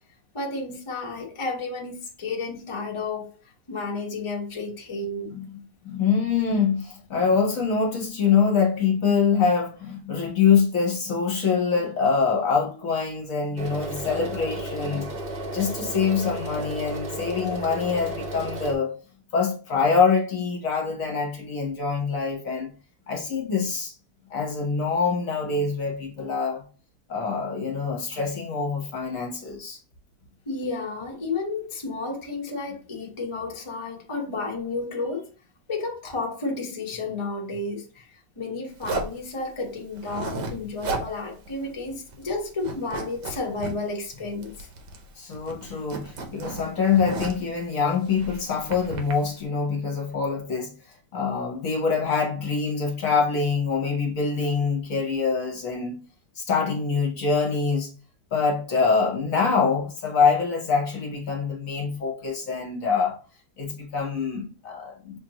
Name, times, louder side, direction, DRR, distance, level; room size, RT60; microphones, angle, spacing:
voice 1, 0.3-3.3 3.7-5.3 30.5-35.3 35.7-38.1 38.4-44.7, left 3 dB, 35° left, 0.5 m, -32 dB
voice 2, 5.3-15.1 15.5-19.0 19.3-22.7 23.1-23.9 24.3-26.6 27.1-29.8 45.2-56.0 56.4-57.9 58.3-63.2 63.6-65.2, left 5 dB, 50° left, 1.1 m, -25 dB
sound 1, 13.6-18.7, right 1 dB, 40° right, 0.8 m, -34 dB
Zipper (clothing), 38.8-39.2 40.0-40.5 40.8-41.1 41.5-41.6 41.9-42.3 42.6-43.7 44.4-45.1 45.3-47.5 48.1-49.1, right 3 dB, 65° right, 1.3 m, -33 dB
6.1 x 2.6 x 2.8 m
omnidirectional pair, 2.1 m